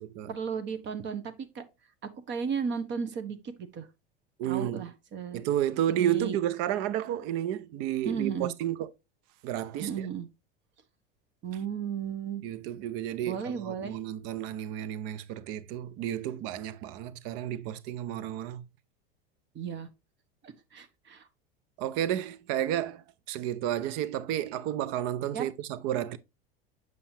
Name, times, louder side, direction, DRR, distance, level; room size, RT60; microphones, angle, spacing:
voice 1, 0.3-1.6 2.3-3.9 4.4-5.4 5.9-6.4 8.0-8.5 9.8-10.3 11.4-12.4 13.2-14.0 19.5-19.9 20.4-21.3 25.3-25.5, right 6 dB, 40° right, 1.2 m, -34 dB
voice 2, 4.4-4.9 5.3-8.9 9.4-10.1 12.4-18.6 21.8-26.2, right 11 dB, 55° right, 0.7 m, -31 dB
7.8 x 5.6 x 2.8 m
hypercardioid pair, 100°, 30 cm